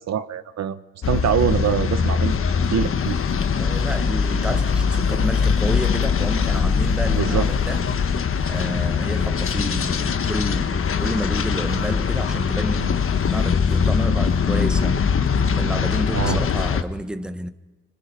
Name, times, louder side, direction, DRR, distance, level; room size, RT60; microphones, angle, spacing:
voice 1, 0.1-0.8 1.1-2.4 2.7-3.2 7.1-7.5 16.1-16.4, right 9 dB, 60° right, 1.0 m, -23 dB
sound 1, 1.0-16.8, left 6 dB, 45° left, 1.3 m, -22 dB
voice 2, 3.6-17.5, equal, 5° right, 1.2 m, -30 dB
27.5 x 25.5 x 5.6 m
cardioid pair, 90°, 30 cm